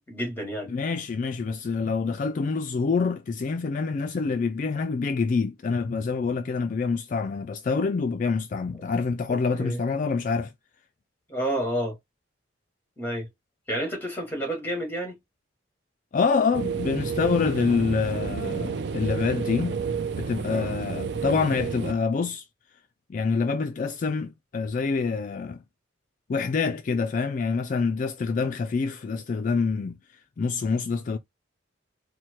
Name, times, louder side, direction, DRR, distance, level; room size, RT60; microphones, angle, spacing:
voice 1, 0.1-0.7 9.3-9.8 11.3-12.0 13.0-13.3 13.7-15.2 20.4-20.7 26.9-27.0, right 1 dB, 10° left, 1.7 m, -30 dB
voice 2, 0.7-10.5 16.1-19.8 20.2-22.4 23.1-25.6 26.3-30.0 30.4-31.2, left 4 dB, 45° left, 0.3 m, -26 dB
sound 1, 16.5-21.9, right 5 dB, 60° right, 0.4 m, -30 dB
4.3 x 2.1 x 4.5 m
head